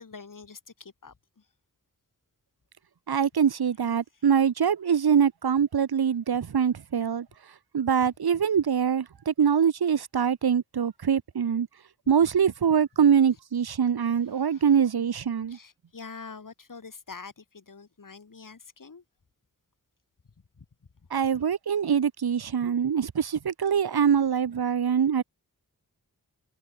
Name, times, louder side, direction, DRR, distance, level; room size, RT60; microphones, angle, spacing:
voice 1, 0.0-1.5 4.1-4.3 8.0-8.1 9.4-9.6 12.0-12.1 14.0-14.9 15.5-19.0 20.6-20.7, left 4 dB, 55° left, 2.9 m, -46 dB
voice 2, 3.1-7.3 7.7-11.7 12.1-15.6 21.1-25.2, right 7 dB, 75° right, 1.2 m, -24 dB
cardioid pair, 45°, 38 cm